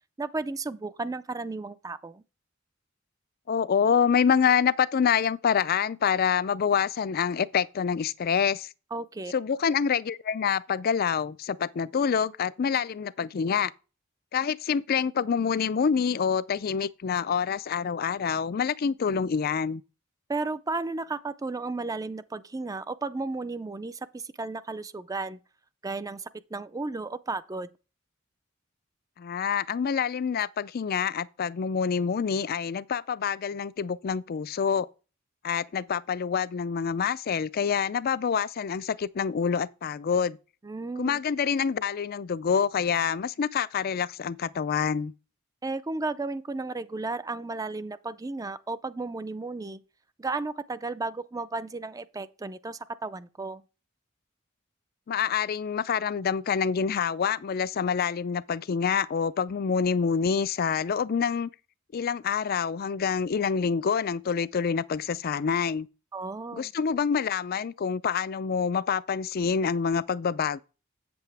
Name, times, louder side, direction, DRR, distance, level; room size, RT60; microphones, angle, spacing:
voice 1, 0.2-2.2 8.9-9.3 20.3-25.4 25.8-27.7 40.6-41.2 45.6-49.8 50.2-53.6 66.1-66.7, right 3 dB, 20° right, 0.4 m, -34 dB
voice 2, 3.5-8.7 9.3-13.7 14.3-19.8 29.2-34.9 35.4-40.4 41.0-45.1 55.1-61.5 61.9-65.9 66.5-70.6, left 6 dB, 50° left, 0.4 m, -26 dB
8.1 x 7.8 x 3.4 m
head